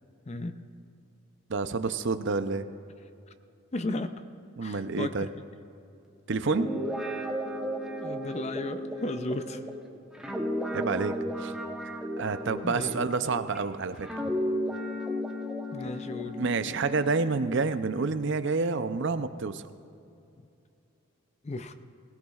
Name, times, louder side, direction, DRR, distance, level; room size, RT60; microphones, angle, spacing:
voice 1, 0.3-0.6 3.7-4.2 4.6-5.3 8.0-9.6 12.6-13.1 15.7-16.4 21.4-21.7, left 2 dB, 30° left, 10 dB, 0.5 m, -35 dB
voice 2, 1.5-2.7 4.6-5.3 6.3-6.7 10.7-11.5 12.2-14.1 16.4-19.7, right 4 dB, 55° right, 10 dB, 0.5 m, -29 dB
Guitar, 6.4-13.6 14.0-17.7, equal, 5° right, 0.9 m, -34 dB
22.0 x 16.5 x 2.4 m, 2.6 s
head